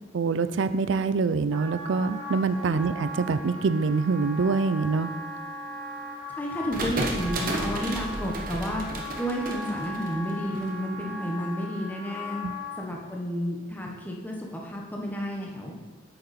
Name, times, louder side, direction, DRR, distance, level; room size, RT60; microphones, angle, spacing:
voice 1, 0.1-5.1 12.4-12.5, right 4 dB, 80° right, 13 dB, 0.4 m, -25 dB
Wind instrument woodwind instrument, 1.5-12.8, left 1 dB, 10° right, 1.6 m, -38 dB
voice 2, 6.3-8.8 9.2-12.4 12.8-15.8, equal, 10° left, -1 dB, 1.1 m, -31 dB
sound 1, 6.7-10.6, right 1 dB, 45° right, 1.0 m, -32 dB
8.6 x 6.6 x 4.2 m, 1.4 s
head